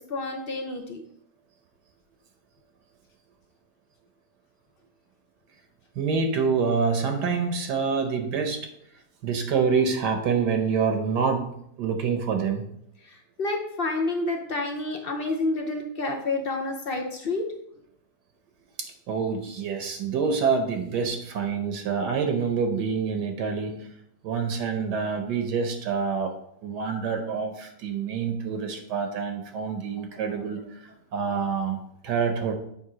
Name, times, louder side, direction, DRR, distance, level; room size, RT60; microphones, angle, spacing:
voice 1, 0.1-1.0 13.0-17.5, left 2 dB, 60° left, 3 dB, 0.5 m, -29 dB
voice 2, 6.0-8.7 9.2-11.5 11.8-12.6 18.8-23.9 24.2-26.3 26.6-30.6 31.1-31.8 32.0-32.5, right 5 dB, 75° right, 5 dB, 1.4 m, -26 dB
7.5 x 3.5 x 4.9 m, 0.74 s
omnidirectional pair, 1.8 m